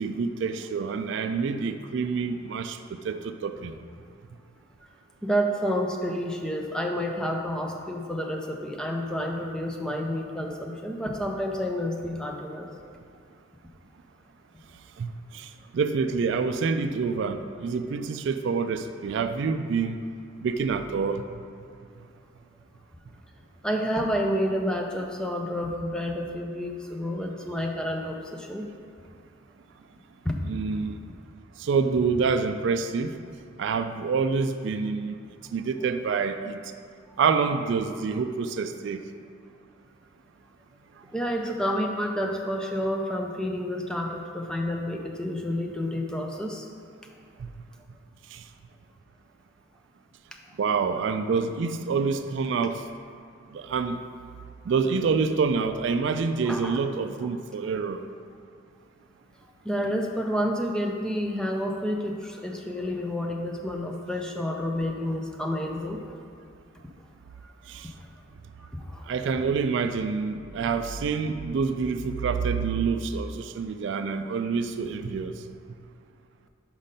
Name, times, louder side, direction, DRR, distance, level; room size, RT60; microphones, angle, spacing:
voice 1, 0.0-3.7 15.0-20.0 20.4-21.2 30.4-31.0 31.6-33.1 33.6-35.2 35.5-36.6 37.2-39.0 47.4-47.5 48.3-48.4 50.6-52.8 53.5-54.0 54.7-58.0 67.7-67.9 69.1-75.3, right 5 dB, 60° right, 8 dB, 0.3 m, -27 dB
voice 2, 5.2-12.7 23.6-28.7 30.2-30.4 41.1-46.7 56.4-56.8 59.6-66.1 67.4-67.5 68.6-69.1, equal, 5° left, 1 dB, 0.4 m, -29 dB
5.6 x 5.2 x 5.2 m, 2.3 s
head